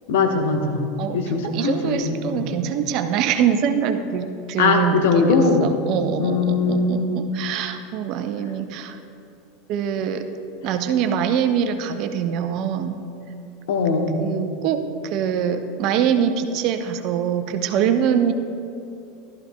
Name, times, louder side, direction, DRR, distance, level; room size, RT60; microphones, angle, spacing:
voice 1, 0.1-0.8 1.1-2.4 4.6-5.7 6.2-7.3 13.7-14.1, left 4 dB, 60° left, 3 dB, 1.2 m, -20 dB
voice 2, 1.0-9.0 9.7-10.3 10.6-13.0 14.2-18.3, right 8 dB, 50° right, 8 dB, 0.7 m, -24 dB
14.5 x 12.5 x 2.3 m, 2.6 s
figure-of-eight pair, 80°, 0 cm